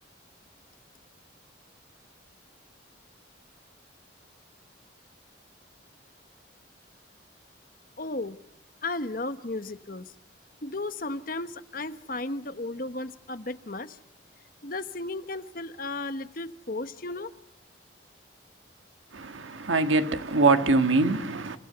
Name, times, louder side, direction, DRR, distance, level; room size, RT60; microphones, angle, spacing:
voice 1, 8.0-8.4 8.8-10.1 10.6-14.0 14.6-17.3, left 2 dB, 45° left, 1.1 m, -34 dB
voice 2, 19.1-21.6, right 3 dB, 85° right, 1.6 m, -23 dB
29.0 x 16.0 x 7.9 m
head